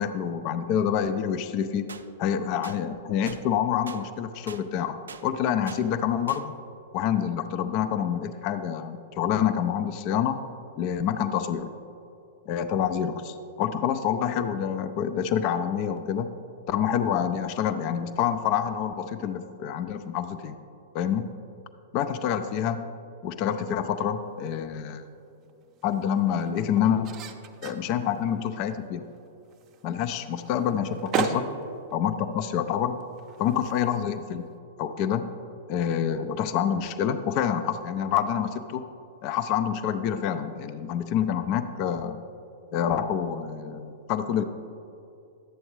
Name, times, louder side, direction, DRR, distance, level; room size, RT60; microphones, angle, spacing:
voice 1, 0.0-1.9 2.2-5.0 5.2-6.5 6.9-10.4 10.8-11.7 12.5-16.3 16.7-20.5 20.9-21.3 21.9-22.9 23.2-25.0 25.8-27.1 27.6-29.1 29.8-31.5 31.9-33.0 33.4-34.5 34.8-35.3 35.7-38.8 39.2-42.2 42.7-44.4, left 9 dB, 40° left, 10 dB, 0.4 m, -27 dB
sound 1, 1.9-2.0 2.6-2.8 3.3-3.4 3.9-4.0 4.5-4.6 5.1-5.2 5.7-5.8 6.3-6.4, right 5 dB, 75° right, 0.4 m, -41 dB
sound 2, 24.2-34.6, right 6 dB, 35° right, 0.6 m, -38 dB
11.5 x 7.8 x 3.0 m, 2.6 s
figure-of-eight pair, 100°, 0 cm